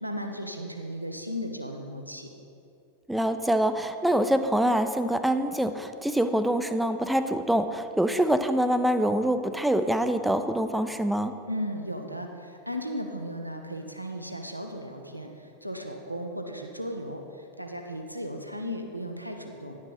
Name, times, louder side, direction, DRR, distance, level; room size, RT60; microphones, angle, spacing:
voice 1, 0.0-2.3 11.5-19.8, equal, 90° right, 3 dB, 0.8 m, -36 dB
voice 2, 3.1-11.3, right 1 dB, 5° right, 9 dB, 0.5 m, -25 dB
10.5 x 6.4 x 5.7 m, 2.7 s
figure-of-eight pair, 90°, 0 cm